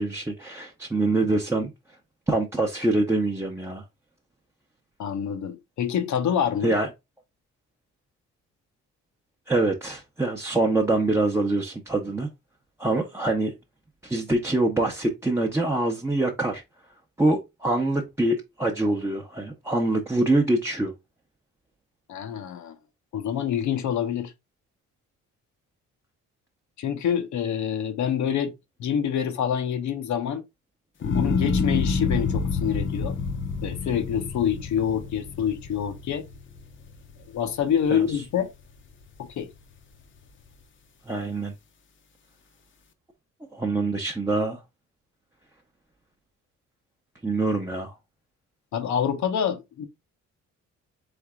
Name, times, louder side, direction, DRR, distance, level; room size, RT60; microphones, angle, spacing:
voice 1, 0.0-1.7 2.3-3.8 6.6-6.9 9.5-12.3 12.8-13.5 14.0-16.6 17.2-20.9 37.9-38.0 41.1-41.5 43.5-44.6 47.2-47.9, right 2 dB, 10° right, 0.8 m, -25 dB
voice 2, 5.0-6.7 22.1-22.8 23.1-24.3 26.8-28.5 28.8-30.4 31.1-33.2 33.6-36.3 37.3-38.5 39.2-39.5 48.7-49.9, left 8 dB, 70° left, 0.9 m, -26 dB
sound 1, 31.0-37.3 37.8-38.4, left 4 dB, 40° left, 0.7 m, -28 dB
3.9 x 3.4 x 3.6 m
cardioid pair, 90°, 30 cm